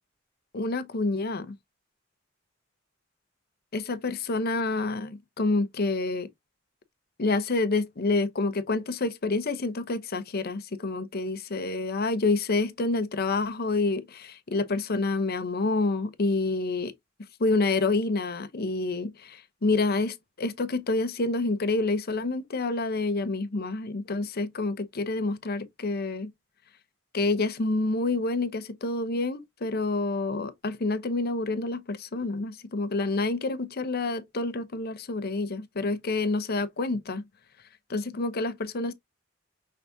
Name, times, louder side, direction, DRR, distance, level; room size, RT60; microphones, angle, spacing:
voice 1, 0.5-1.5 3.7-6.3 7.2-16.9 17.4-26.3 27.1-37.2 37.9-38.9, left 3 dB, 50° left, 0.7 m, -28 dB
5.7 x 3.4 x 2.6 m
head